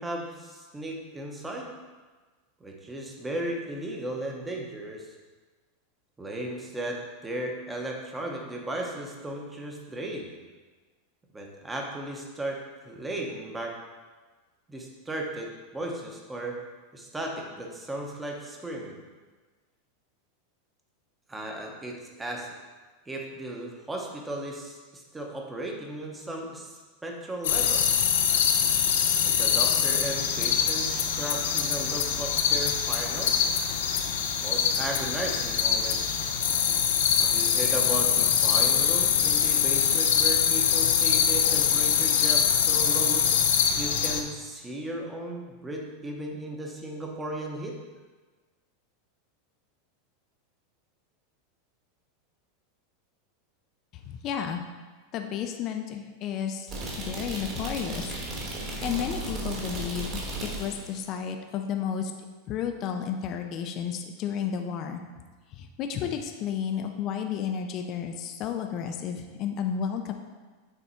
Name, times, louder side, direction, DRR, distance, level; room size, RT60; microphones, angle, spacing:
voice 1, 0.0-1.7 2.6-5.1 6.2-10.3 11.3-12.6 12.8-13.8 14.7-15.5 15.7-16.5 16.9-19.0 21.3-22.5 23.1-27.9 29.2-33.3 34.4-36.0 37.2-43.3 43.8-47.7, right 1 dB, 10° right, 0 dB, 0.8 m, -35 dB
sound 1, 27.4-44.2, left 8 dB, 85° left, 0.6 m, -24 dB
voice 2, 53.9-54.6 55.1-56.7 57.0-58.2 58.5-60.2 60.6-62.1 62.5-65.0 65.5-70.1, left 8 dB, 35° left, 5 dB, 0.4 m, -32 dB
sound 2, 56.7-60.9, right 2 dB, 30° right, 1.3 m, -35 dB
6.7 x 3.5 x 4.4 m, 1.3 s
supercardioid pair, 160°, 0 cm